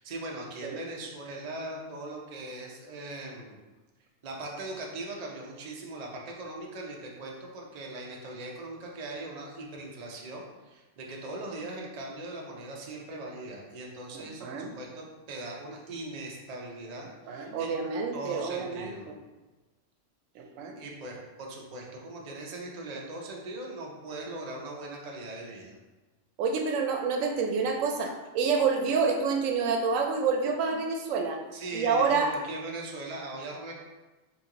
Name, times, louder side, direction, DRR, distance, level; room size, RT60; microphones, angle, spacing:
voice 1, 0.0-3.6 4.2-17.8 18.1-19.1 20.7-25.8 31.5-33.7, right 2 dB, 40° right, -1 dB, 0.6 m, -40 dB
voice 2, 14.1-14.7 17.3-19.1 20.4-20.8 26.4-31.4 31.7-32.3, right 5 dB, 85° right, 3 dB, 1.0 m, -28 dB
3.0 x 3.0 x 3.7 m, 1.2 s
omnidirectional pair, 1.3 m